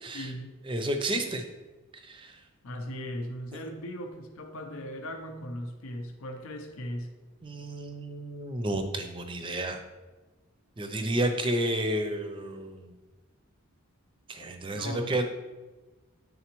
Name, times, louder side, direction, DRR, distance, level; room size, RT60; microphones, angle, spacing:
voice 1, 0.1-0.5 2.6-7.1 14.4-15.2, equal, 75° left, 4 dB, 0.6 m, -38 dB
voice 2, 0.7-1.4 2.0-2.3 7.4-9.8 10.8-12.9 14.3-15.2, right 1 dB, 25° right, 6 dB, 0.5 m, -31 dB
9.3 x 3.7 x 3.0 m, 1.2 s
head